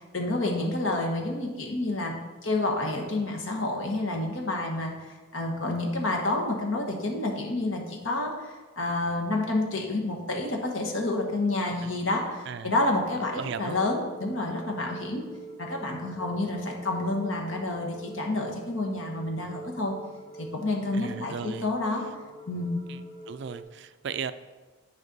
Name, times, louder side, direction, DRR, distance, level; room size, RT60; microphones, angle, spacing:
voice 1, 0.1-2.1 2.4-15.2 15.6-19.9 20.4-22.0 22.5-22.8, left 2 dB, 70° left, 2 dB, 1.2 m, -29 dB
voice 2, 13.3-13.8 20.9-21.7 22.9-23.0 23.3-24.3, right 6 dB, 55° right, 12 dB, 0.3 m, -36 dB
sound 1, 13.6-23.6, right 1 dB, 30° left, 1.6 m, -45 dB
9.3 x 5.2 x 4.1 m, 1.3 s
head